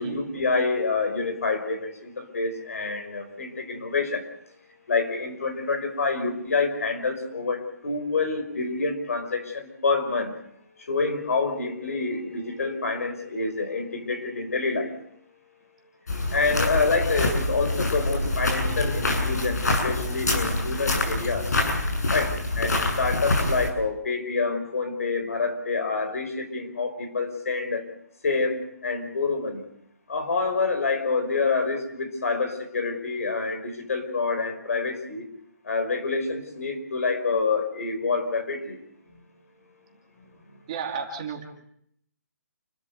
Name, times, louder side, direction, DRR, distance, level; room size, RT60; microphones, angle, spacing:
voice 1, 0.0-4.3 4.9-10.3 10.8-15.0 16.3-21.5 22.1-27.8 28.2-29.6 30.1-35.3 35.6-38.8 39.1-39.2 40.5-40.6, left 4 dB, 60° left, 7 dB, 5.2 m, -27 dB
sound 1, 16.1-23.7, left 2 dB, 75° left, 7.4 m, -26 dB
voice 2, 40.7-41.4, right 6 dB, 20° right, 1 dB, 2.5 m, -32 dB
29.0 x 13.0 x 8.2 m, 0.71 s
hypercardioid pair, 180°, 9 cm